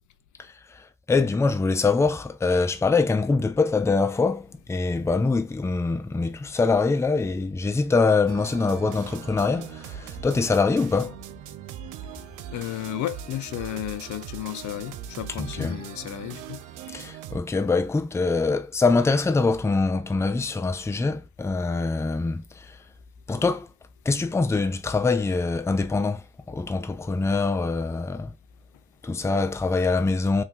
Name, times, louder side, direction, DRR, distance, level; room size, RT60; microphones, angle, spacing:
voice 1, 0.4-11.2 15.4-15.8 16.9-22.8 23.3-23.7 24.1-28.3 29.0-30.4, left 3 dB, 10° left, 0.4 m, -24 dB
sound 1, 8.3-17.4, right 10 dB, 90° right, 0.5 m, -40 dB
voice 2, 12.5-16.6, left 14 dB, 75° left, 0.5 m, -33 dB
2.7 x 2.7 x 3.5 m
cardioid pair, 90°, 30 cm